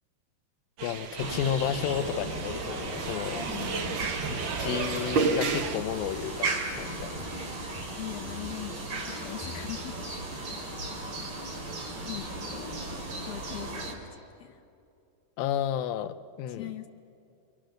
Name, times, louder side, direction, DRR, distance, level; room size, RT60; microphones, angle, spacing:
voice 1, 0.8-3.5 4.3-7.3 15.4-16.7, left 10 dB, 90° left, 10 dB, 2.5 m, -32 dB
sound 1, 0.8-5.8, right 4 dB, 70° right, 1.1 m, -32 dB
sound 2, 1.2-13.9, right 2 dB, 40° right, 3.6 m, -36 dB
voice 2, 3.5-4.1 8.0-10.0 12.0-12.7 13.2-14.6 16.5-16.9, left 13 dB, 60° left, 4 dB, 2.1 m, -41 dB
sound 3, 4.7-9.9, left 4 dB, 15° left, 5.3 m, -51 dB
28.5 x 26.0 x 6.4 m, 2.6 s
omnidirectional pair, 3.9 m